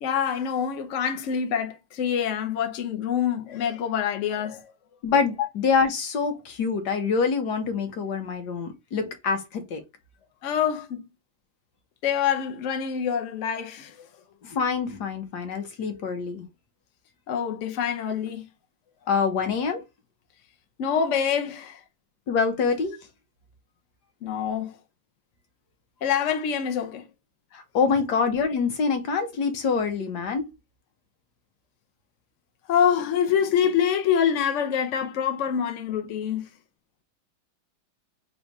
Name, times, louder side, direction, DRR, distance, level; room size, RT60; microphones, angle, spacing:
voice 1, 0.0-4.6 10.4-11.0 12.0-13.9 17.3-18.4 20.8-21.8 24.2-24.7 26.0-27.0 32.7-36.5, left 8 dB, 85° left, 0.6 m, -25 dB
voice 2, 5.0-9.8 14.4-16.4 19.1-19.8 22.3-23.0 27.5-30.5, left 5 dB, 60° left, 1.3 m, -25 dB
4.0 x 2.4 x 4.6 m
omnidirectional pair, 2.4 m